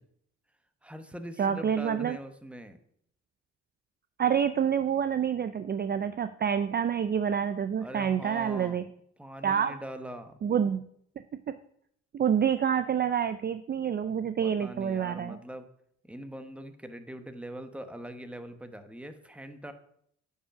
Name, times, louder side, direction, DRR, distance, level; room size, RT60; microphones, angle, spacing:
voice 1, 0.8-2.8 7.8-8.8 9.2-10.4 14.4-15.7 16.0-19.7, right 1 dB, 5° right, 8 dB, 1.0 m, -42 dB
voice 2, 1.4-2.2 4.2-8.8 9.4-9.7 10.4-10.8 12.1-15.4, right 8 dB, 35° right, 11 dB, 0.4 m, -27 dB
9.6 x 5.5 x 5.8 m, 0.68 s
cardioid pair, 90°, 30 cm